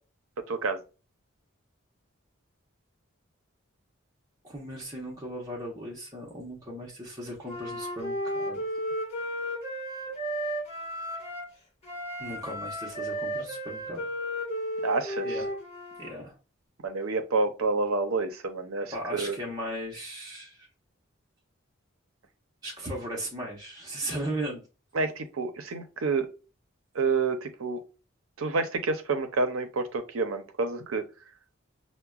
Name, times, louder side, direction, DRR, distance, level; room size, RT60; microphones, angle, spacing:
voice 1, 0.5-0.8 14.8-15.4 16.8-19.4 24.9-26.3 26.9-27.8 28.4-31.0, right 3 dB, 80° right, 0.6 m, -28 dB
voice 2, 4.4-8.6 12.2-14.1 15.2-15.5 16.0-16.3 18.9-20.7 22.6-24.6, right 1 dB, 20° right, 0.8 m, -37 dB
Wind instrument woodwind instrument, 7.4-11.5 11.8-16.1, equal, 30° left, 1.2 m, -34 dB
5.7 x 2.1 x 2.3 m
head